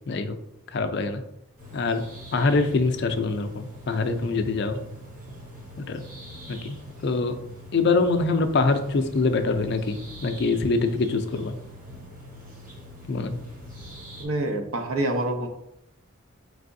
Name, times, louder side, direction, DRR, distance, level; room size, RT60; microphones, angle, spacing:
voice 1, 0.7-1.2 1.7-2.0 2.3-4.8 5.8-6.0 6.5-6.8 7.0-7.4 7.7-11.6 13.1-13.4, left 3 dB, 50° left, 8 dB, 0.4 m, -24 dB
sound 1, 1.6-14.2, equal, 40° right, 1.0 m, -43 dB
voice 2, 14.2-15.5, right 1 dB, 70° right, 5 dB, 0.6 m, -26 dB
4.6 x 3.3 x 2.6 m, 0.79 s
head